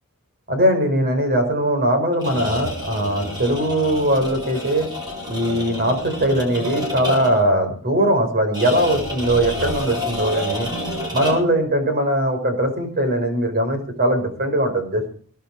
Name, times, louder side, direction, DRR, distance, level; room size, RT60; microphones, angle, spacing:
voice 1, 0.5-4.9 5.3-10.7 11.1-15.1, right 1 dB, 45° right, 6 dB, 5.4 m, -20 dB
sound 1, 2.1-7.5 8.5-11.6, left 1 dB, 20° right, 7.6 m, -29 dB
20.5 x 12.0 x 5.0 m, 0.43 s
head